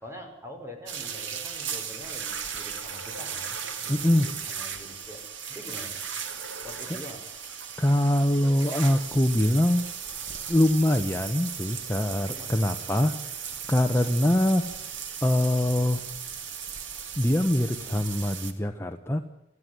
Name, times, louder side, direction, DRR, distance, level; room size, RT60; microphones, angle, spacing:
voice 1, 0.0-6.0 6.6-7.2 12.3-12.8, equal, 15° right, 4 dB, 5.4 m, -44 dB
sound 1, 0.9-18.5, right 7 dB, 80° right, 2.3 m, -36 dB
voice 2, 3.9-4.3 7.8-9.9 10.5-13.1 13.7-14.7 15.2-16.0 17.2-19.2, left 1 dB, 15° left, 5 dB, 1.1 m, -23 dB
29.0 x 14.5 x 9.5 m, 0.85 s
head